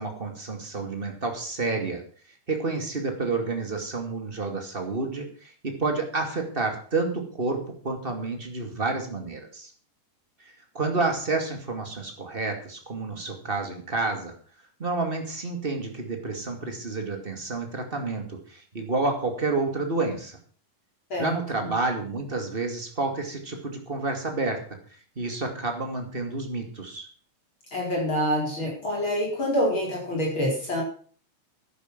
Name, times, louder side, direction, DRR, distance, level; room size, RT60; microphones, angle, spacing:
voice 1, 0.0-2.0 2.5-9.7 10.7-14.3 14.8-20.4 21.2-24.6 25.2-27.1, right 3 dB, 20° right, 4 dB, 2.3 m, -29 dB
voice 2, 21.1-21.7 27.7-30.8, equal, 35° left, -3 dB, 5.3 m, -26 dB
12.0 x 9.9 x 6.1 m, 0.43 s
omnidirectional pair, 3.7 m